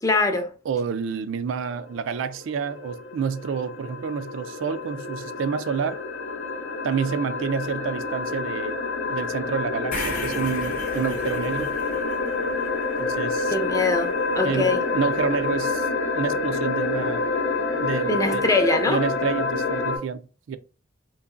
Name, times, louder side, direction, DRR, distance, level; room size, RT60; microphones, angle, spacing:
voice 1, 0.0-0.5 13.5-14.8 18.1-19.0, left 3 dB, 15° left, 0.4 m, -22 dB
voice 2, 0.7-6.0 6.8-8.8 9.1-11.7 13.0-13.5 14.4-15.9 16.1-17.2 17.8-18.4 18.9-20.6, right 6 dB, 75° right, 0.3 m, -28 dB
sound 1, 1.7-20.0, left 3 dB, 80° left, 0.7 m, -28 dB
sound 2, 9.9-14.1, left 2 dB, 40° left, 0.8 m, -37 dB
3.8 x 2.9 x 2.4 m
head